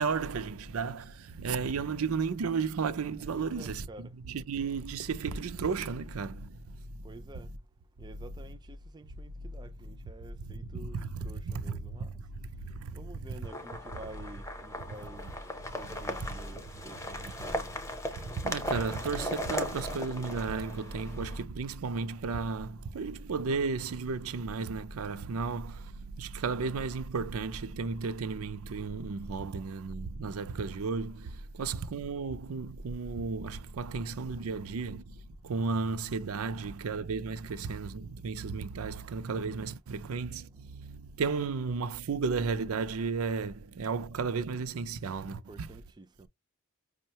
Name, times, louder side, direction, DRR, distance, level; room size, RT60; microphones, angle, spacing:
voice 1, 0.0-3.9 4.3-6.6 10.4-12.1 12.6-13.0 16.2-16.3 18.2-35.0 35.4-45.7, right 4 dB, 80° right, 0.5 m, -34 dB
voice 2, 3.3-4.1 7.0-7.5 8.0-12.1 12.9-15.3 15.8-17.7 45.1-46.3, right 2 dB, 20° right, 0.4 m, -50 dB
BC car on gravel, 13.4-21.4, equal, 15° left, 0.7 m, -37 dB
5.4 x 2.2 x 2.8 m
head